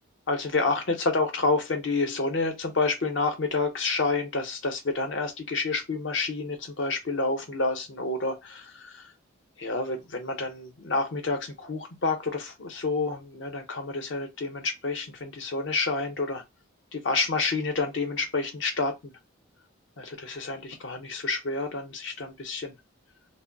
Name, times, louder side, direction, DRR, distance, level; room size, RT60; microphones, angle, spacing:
voice 1, 0.3-9.1 9.6-16.4 16.9-19.2 20.0-22.7, left 3 dB, 65° left, 0.6 m, -29 dB
2.2 x 2.0 x 3.7 m
head